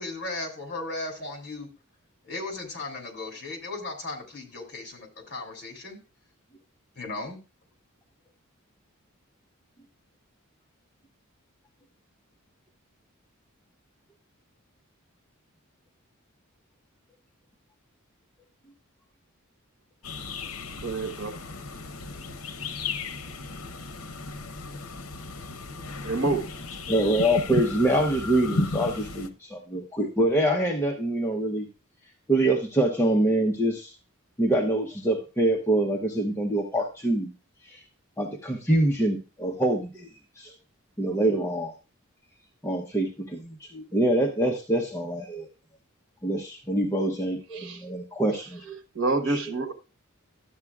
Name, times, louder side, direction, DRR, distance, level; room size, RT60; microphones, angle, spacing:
voice 1, 0.0-1.7 2.2-6.0 7.0-7.4, left 2 dB, 50° left, 3 dB, 2.8 m, -36 dB
sound 1, 20.0-29.3, left 3 dB, 80° left, 0.9 m, -35 dB
voice 2, 20.8-21.3 26.0-26.4 47.5-47.8 48.9-49.7, right 3 dB, 60° right, 7 dB, 1.4 m, -27 dB
voice 3, 26.9-31.7 32.3-33.9 34.4-37.3 37.6-37.8 38.2-40.1 40.4-40.5 41.0-41.7 42.6-45.5 46.2-48.7 49.3-49.4, right 1 dB, 10° left, 0 dB, 0.9 m, -25 dB
12.5 x 8.1 x 2.4 m, 0.32 s
head